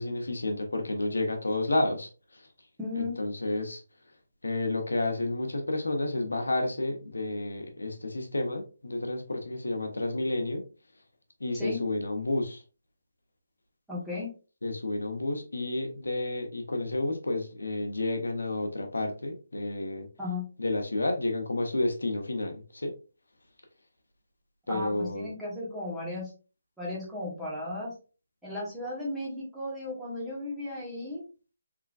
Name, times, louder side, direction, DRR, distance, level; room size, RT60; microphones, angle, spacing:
voice 1, 0.0-2.4 3.0-3.8 4.4-10.6 11.4-12.6 14.6-20.1 20.6-22.9 24.7-25.3, left 2 dB, 90° left, 4 dB, 0.9 m, -30 dB
voice 2, 2.8-3.1 11.6-11.8 13.9-14.3 20.2-20.4 24.7-26.3 26.8-27.9 28.4-31.3, left 2 dB, 5° right, -7 dB, 1.4 m, -35 dB
3.6 x 3.3 x 2.5 m, 0.34 s
figure-of-eight pair, 160°, 0 cm